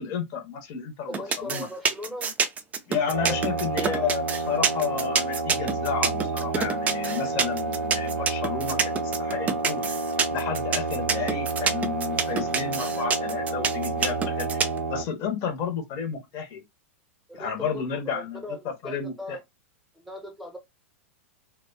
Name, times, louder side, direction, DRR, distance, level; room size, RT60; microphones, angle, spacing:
voice 1, 0.0-1.7 2.9-9.9 10.3-14.6 14.9-16.6 17.3-19.4, left 7 dB, 40° left, 0.8 m, -32 dB
voice 2, 1.1-2.3 3.3-3.4 17.3-19.4 20.0-20.6, left 1 dB, ahead, 0.8 m, -38 dB
sound 1, 1.1-14.8, right 6 dB, 20° right, 0.4 m, -26 dB
sound 2, 3.1-15.0, right 3 dB, 80° right, 0.4 m, -30 dB
2.4 x 2.2 x 2.3 m
figure-of-eight pair, 95°, 7 cm